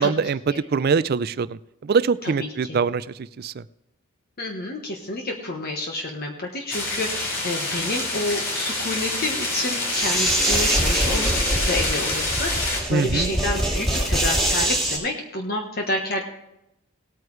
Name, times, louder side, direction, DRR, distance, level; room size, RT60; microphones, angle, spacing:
voice 1, 0.0-3.6 12.9-13.3, right 5 dB, 45° right, 16 dB, 0.4 m, -23 dB
voice 2, 2.4-2.8 4.4-16.2, left 2 dB, 45° left, 2 dB, 1.2 m, -29 dB
sound 1, 6.7-12.8, left 2 dB, 60° left, 3.7 m, -27 dB
sound 2, 9.9-15.0, right 1 dB, ahead, 2.7 m, -24 dB
18.5 x 9.2 x 3.2 m, 0.87 s
head